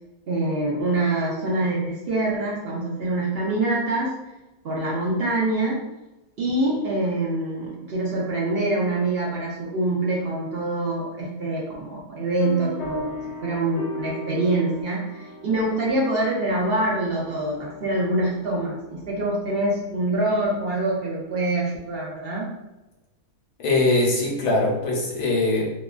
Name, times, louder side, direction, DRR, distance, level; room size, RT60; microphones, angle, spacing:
voice 1, 0.3-4.2 4.6-5.8 6.4-13.2 13.4-22.5, right 2 dB, 70° right, -4 dB, 0.5 m, -25 dB
sound 1, 12.4-20.5, left 2 dB, 45° left, 0.5 m, -38 dB
voice 2, 23.6-25.7, left 2 dB, 75° left, -2 dB, 1.2 m, -21 dB
2.9 x 2.3 x 2.3 m, 1.0 s
omnidirectional pair, 1.7 m